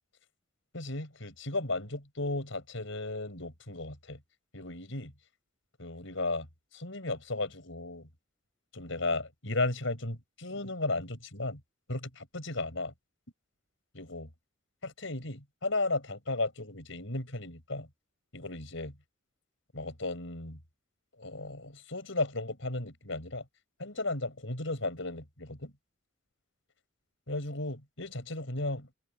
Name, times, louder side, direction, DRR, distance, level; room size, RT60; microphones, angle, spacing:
voice 1, 0.7-4.2 4.5-5.1 5.8-6.5 6.7-8.1 8.7-11.6 11.9-12.9 13.9-14.3 14.8-17.9 18.3-19.0 19.7-20.6 21.2-23.4 23.8-25.7 27.3-28.9, left 2 dB, 70° left, 6.5 m, -35 dB
head